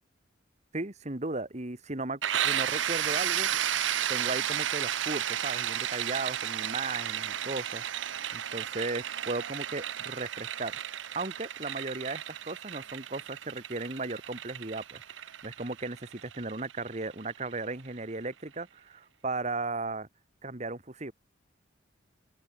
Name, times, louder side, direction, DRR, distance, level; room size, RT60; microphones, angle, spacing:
voice 1, 0.7-3.8 4.1-7.8 8.3-10.7 11.2-20.1 20.4-21.1, right 3 dB, 35° right, 1.9 m, -36 dB
sound 1, 2.2-17.8, right 10 dB, 80° right, 0.7 m, -33 dB
open air
head